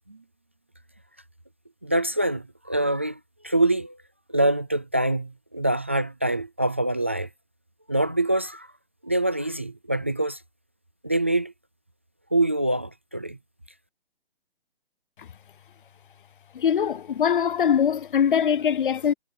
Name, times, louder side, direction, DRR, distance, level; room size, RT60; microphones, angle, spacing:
voice 1, 1.8-4.0 4.3-7.3 7.9-8.7 9.0-10.4 11.0-11.5 12.3-13.4, right 1 dB, 15° right, 0.4 m, -25 dB
voice 2, 16.5-19.1, left 8 dB, 55° left, 0.5 m, -22 dB
hypercardioid pair, 170°, 30 cm